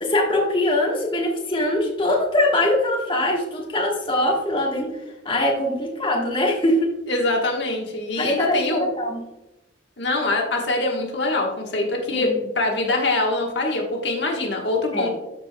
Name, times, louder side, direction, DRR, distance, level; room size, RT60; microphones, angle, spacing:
voice 1, 0.0-4.9 5.2-6.9 8.2-9.2 12.1-12.3 14.9-15.1, left 1 dB, 25° left, -2 dB, 1.2 m, -22 dB
voice 2, 7.1-8.9 10.0-15.1, left 2 dB, 60° left, 0 dB, 1.2 m, -23 dB
12.5 x 4.9 x 2.2 m, 0.95 s
head